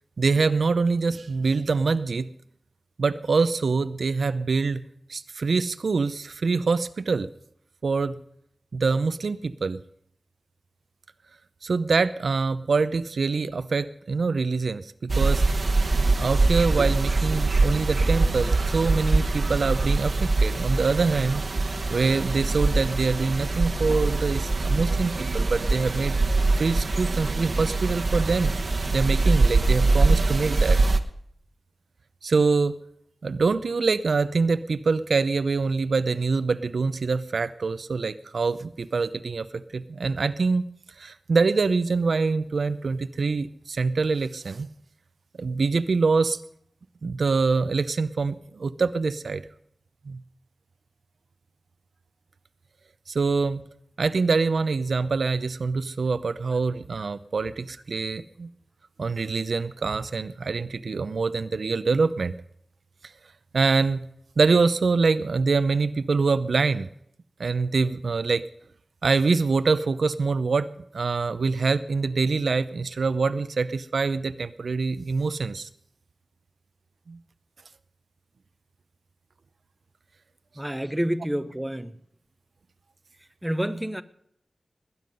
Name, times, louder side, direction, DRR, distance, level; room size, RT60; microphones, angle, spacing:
voice 1, 0.2-2.3 3.0-4.8 5.1-7.3 7.8-8.2 8.7-9.8 11.6-15.4 16.0-21.4 21.9-26.2 26.5-28.6 28.9-30.8 32.2-32.8 33.2-40.6 41.0-44.7 45.4-46.4 47.0-49.4 50.1-50.2 53.1-53.6 54.0-58.5 59.0-62.3 63.5-64.1 64.4-66.9 67.4-68.4 69.0-70.7 70.9-75.7 77.1-77.2, right 4 dB, 80° right, 0.6 m, -25 dB
sound 1, 15.1-31.0, right 3 dB, 55° right, 1.1 m, -23 dB
voice 2, 80.6-82.0 83.2-84.0, equal, 10° right, 0.7 m, -29 dB
20.0 x 9.5 x 5.3 m
wide cardioid pair, 100°, 0 cm